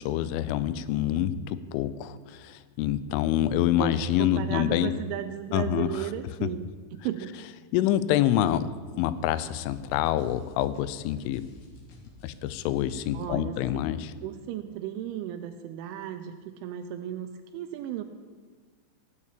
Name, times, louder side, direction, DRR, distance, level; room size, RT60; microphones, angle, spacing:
voice 1, 0.0-4.9 5.5-6.1 7.7-8.7 9.0-11.4 12.2-14.1, left 12 dB, 85° left, 14 dB, 3.0 m, -26 dB
voice 2, 3.8-7.4 13.1-13.9 14.2-18.0, right 11 dB, 85° right, 7 dB, 2.9 m, -35 dB
sound 1, 8.2-13.3, left 1 dB, 60° left, 2.4 m, -53 dB
16.0 x 5.6 x 8.5 m, 1.5 s
omnidirectional pair, 5.8 m